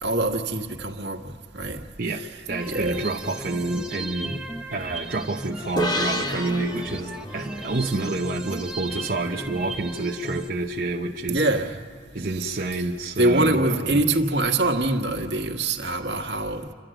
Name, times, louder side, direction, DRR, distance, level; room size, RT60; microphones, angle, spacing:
voice 1, 0.0-1.8 2.1-2.3 2.6-3.1 11.3-11.7 12.4-12.5 13.2-16.7, right 2 dB, 75° right, 4 dB, 1.7 m, -24 dB
voice 2, 2.0-4.4 4.7-11.4 12.1-14.0, right 2 dB, 50° right, -1 dB, 0.9 m, -28 dB
sound 1, 2.5-10.5, right 2 dB, 5° right, 0.9 m, -36 dB
sound 2, 5.8-9.2, equal, 25° left, 0.9 m, -31 dB
29.0 x 12.5 x 9.0 m, 2.1 s
head